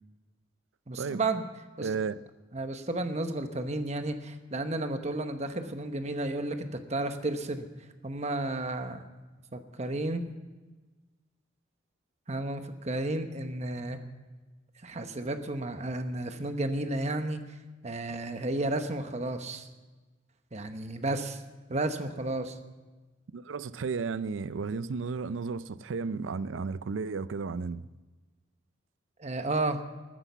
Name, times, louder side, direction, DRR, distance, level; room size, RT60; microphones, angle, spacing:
voice 1, 0.9-1.4 1.8-1.9 2.5-7.6 8.0-9.0 9.5-10.2 12.3-14.0 14.8-17.4 17.8-19.7 20.5-21.4 21.7-22.6 29.2-29.8, right 2 dB, 35° right, 1.0 m, -32 dB
voice 2, 1.8-2.2 23.3-27.9, right 5 dB, 85° right, 0.5 m, -33 dB
14.0 x 9.9 x 7.0 m
head